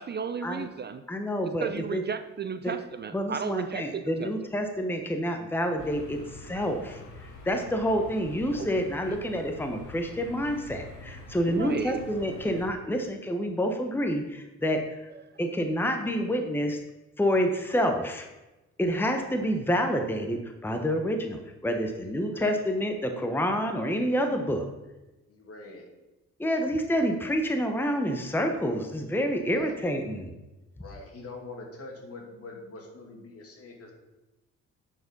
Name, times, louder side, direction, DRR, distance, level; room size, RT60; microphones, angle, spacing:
voice 1, 0.0-1.1 1.6-4.3 8.5-8.7 9.1-9.2 11.5-12.0, right 6 dB, 35° right, 10 dB, 0.5 m, -34 dB
voice 2, 1.1-2.0 2.6-2.7 3.1-15.1 15.4-16.8 17.2-18.3 18.8-24.7 26.4-30.3, equal, 5° left, 5 dB, 1.0 m, -28 dB
sound 1, 5.8-12.7, left 2 dB, 75° left, 2.0 m, -46 dB
voice 3, 22.0-22.5 25.3-25.9 29.5-29.7 30.8-33.9, left 2 dB, 50° left, 1 dB, 2.5 m, -44 dB
10.0 x 5.0 x 5.4 m, 1.0 s
cardioid pair, 90°, 30 cm